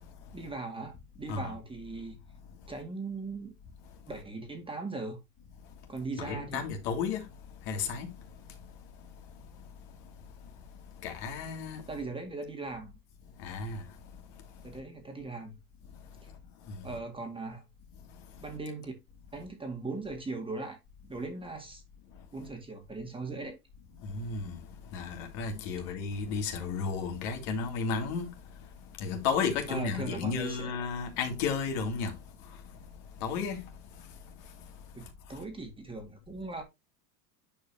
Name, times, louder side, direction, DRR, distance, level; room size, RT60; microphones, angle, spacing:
voice 1, 0.3-2.2 2.7-3.5 4.1-5.2 5.9-6.6 11.9-13.0 14.6-15.6 16.2-16.3 16.8-17.6 18.4-18.9 19.3-20.8 21.1-21.8 22.3-23.6 29.7-30.7 34.9-36.6, right 3 dB, 10° right, 2.0 m, -39 dB
voice 2, 6.2-7.2 7.7-8.1 11.0-11.8 13.4-13.8 24.1-24.5 24.9-28.3 29.0-32.1 33.2-33.6, left 5 dB, 55° left, 2.7 m, -32 dB
9.8 x 5.3 x 2.8 m
supercardioid pair, 125°, 49 cm